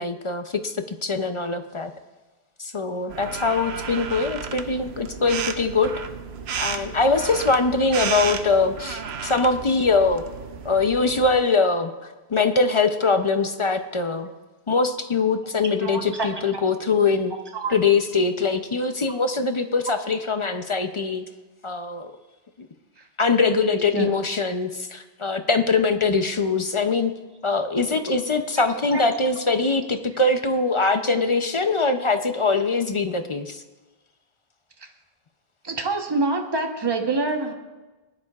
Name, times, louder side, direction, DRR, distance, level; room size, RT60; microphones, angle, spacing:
voice 1, 0.0-1.9 2.6-5.9 6.6-10.2 10.6-14.3 14.7-17.3 17.7-21.3 21.6-22.1 23.2-27.1 27.4-33.6, left 4 dB, 40° left, 7 dB, 0.5 m, -22 dB
sound 1, 3.1-11.4, right 6 dB, 80° right, 0.9 m, -33 dB
voice 2, 15.8-16.6 17.5-17.7 23.9-24.1 28.9-29.0 35.6-37.5, right 3 dB, 25° right, 4 dB, 1.0 m, -26 dB
19.0 x 11.0 x 2.4 m, 1.2 s
omnidirectional pair, 1.1 m